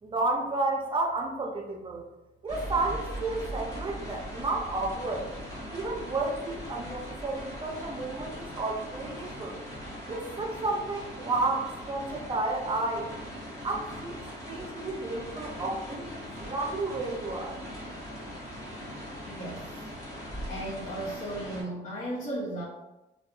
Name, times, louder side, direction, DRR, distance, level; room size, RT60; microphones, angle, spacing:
voice 1, 0.0-2.0 2.4-5.3 5.7-9.6 10.1-13.1 13.6-17.6, right 2 dB, 25° right, 0 dB, 0.6 m, -32 dB
sound 1, 2.5-21.6, equal, 20° left, 1.0 m, -40 dB
voice 2, 19.3-19.9 20.5-22.6, right 1 dB, 40° left, -8 dB, 0.7 m, -35 dB
2.6 x 2.3 x 2.4 m, 0.98 s
cardioid pair, 90°, 20 cm